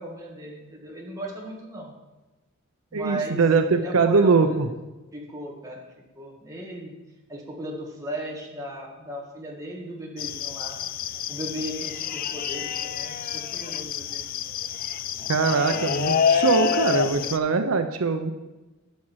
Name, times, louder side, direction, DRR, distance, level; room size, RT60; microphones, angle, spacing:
voice 1, 0.0-1.9 2.9-3.4 3.7-4.7 5.1-5.9 6.1-6.9 7.3-14.3, right 1 dB, 15° right, -1 dB, 1.7 m, -36 dB
voice 2, 2.9-4.7 15.3-18.3, right 4 dB, 75° right, 7 dB, 0.6 m, -22 dB
sound 1, 10.2-17.4, left 7 dB, 40° left, 0.3 m, -27 dB
11.5 x 6.0 x 4.7 m, 1.1 s
head